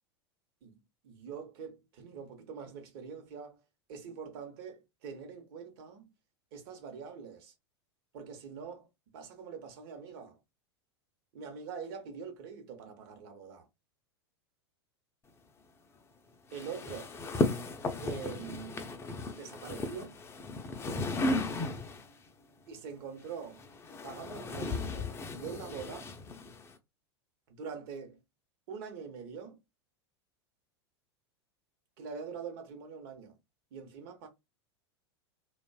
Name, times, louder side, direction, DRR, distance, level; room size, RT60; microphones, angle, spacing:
voice 1, 0.6-3.6 3.9-6.1 6.5-7.5 8.1-8.9 9.1-10.4 11.3-13.7 16.5-17.1 18.0-18.9 19.3-20.2 22.7-23.6 24.0-26.1 27.5-28.2 28.7-29.6 32.0-33.4 33.7-34.3, right 6 dB, 55° right, 0.9 m, -44 dB
sound 1, 16.5-22.1 23.2-26.7, left 2 dB, 20° left, 0.4 m, -35 dB
2.5 x 2.2 x 2.2 m
figure-of-eight pair, 90°, 14 cm